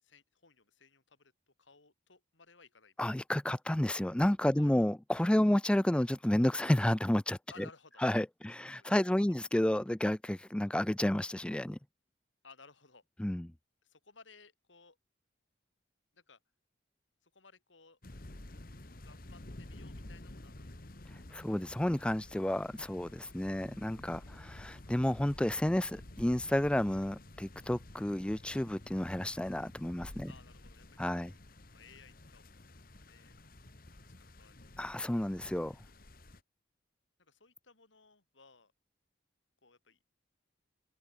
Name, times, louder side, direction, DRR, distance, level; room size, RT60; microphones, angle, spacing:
voice 1, 0.0-2.9 4.5-4.7 7.5-8.1 8.4-8.9 12.4-13.0 13.8-15.0 16.1-16.4 17.2-18.0 19.0-20.8 30.3-31.3 31.7-32.8 33.1-33.3 34.1-34.7 35.7-35.9 37.2-38.7 39.6-40.0, left 4 dB, 80° left, 3.2 m, -60 dB
voice 2, 3.0-7.4 8.0-11.8 13.2-13.5 21.3-30.3 31.0-31.3 34.8-35.8, left 1 dB, 5° left, 0.3 m, -31 dB
sound 1, 18.0-36.4, left 1 dB, 50° left, 1.8 m, -51 dB
head